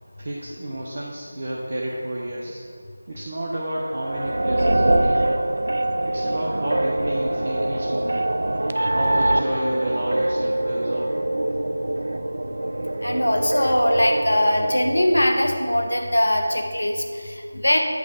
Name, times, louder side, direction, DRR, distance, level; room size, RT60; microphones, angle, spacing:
voice 1, 0.2-2.6 3.1-5.5 6.0-8.3 8.9-11.1, right 1 dB, 40° right, -4 dB, 0.7 m, -30 dB
sound 1, 3.8-15.2, right 1 dB, 60° right, 0.3 m, -24 dB
voice 2, 13.0-17.8, left 1 dB, 70° left, 3 dB, 0.9 m, -21 dB
8.3 x 3.2 x 6.3 m, 2.1 s
figure-of-eight pair, 165°, 0 cm